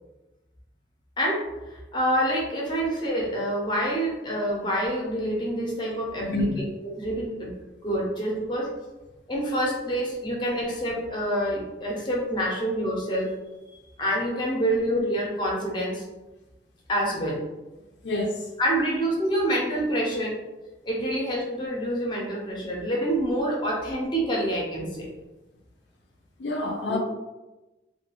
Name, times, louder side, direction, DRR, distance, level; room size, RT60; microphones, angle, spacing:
voice 1, 1.2-6.7 6.9-7.5 7.8-8.7 9.3-13.3 13.7-16.0 16.9-17.4 18.6-20.4 20.8-25.1 26.9-27.0, right 1 dB, 25° left, -3 dB, 0.5 m, -27 dB
voice 2, 6.2-6.6 18.0-18.5 26.4-27.0, left 2 dB, 80° left, 0 dB, 0.5 m, -27 dB
2.3 x 2.2 x 2.9 m, 1.1 s
head